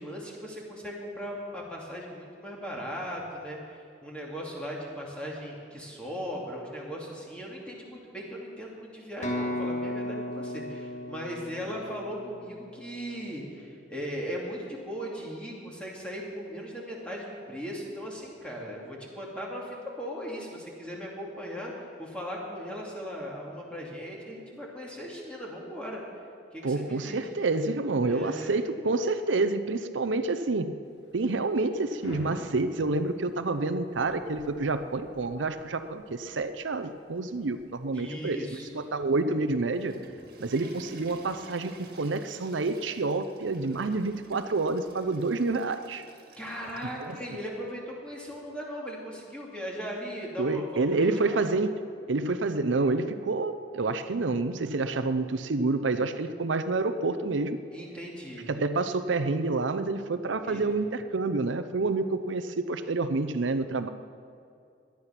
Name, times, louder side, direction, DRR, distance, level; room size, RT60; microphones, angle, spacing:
voice 1, 0.0-26.0 26.5-27.3 28.0-28.6 37.9-38.7 46.4-51.4 57.7-58.5 60.4-60.6, equal, 5° left, -3 dB, 2.6 m, -38 dB
sound 1, 9.2-13.0, left 1 dB, 40° left, 1.7 m, -35 dB
voice 2, 26.6-30.7 31.1-38.4 38.7-39.9 40.4-46.0 47.0-47.1 50.4-51.8 52.1-57.6 58.5-63.9, right 3 dB, 90° right, 10 dB, 0.7 m, -28 dB
Thunder / Rain, 30.9-43.6, equal, 70° left, 1.6 m, -51 dB
Water / Toilet flush, 39.5-47.3, right 2 dB, 50° right, 2.1 m, -51 dB
18.0 x 11.5 x 5.9 m, 2.5 s
head